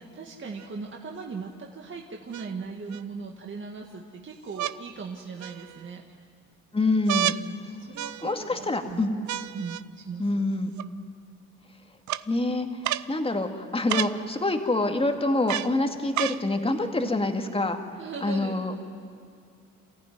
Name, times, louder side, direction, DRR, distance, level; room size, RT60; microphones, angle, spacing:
voice 1, 0.0-6.0 7.8-9.0 9.5-10.4 17.0-17.1 18.0-18.6, right 4 dB, 40° right, 0 dB, 1.9 m, -38 dB
sound 1, 0.6-0.7 2.3-3.0 4.5-4.8 5.4-5.9 7.1-7.4 8.0-8.5 9.3-9.8 10.8-10.9 12.1-12.2 12.8-13.1 13.9-14.2 15.5-15.7 16.1-16.4 17.3-17.4, right 12 dB, 70° right, 0.6 m, -30 dB
voice 2, 6.7-7.3 8.2-9.1 10.2-10.7 12.3-17.8 18.2-18.8, left 2 dB, 20° left, 5 dB, 2.1 m, -26 dB
27.0 x 14.5 x 9.5 m, 2.4 s
cardioid pair, 90°, 30 cm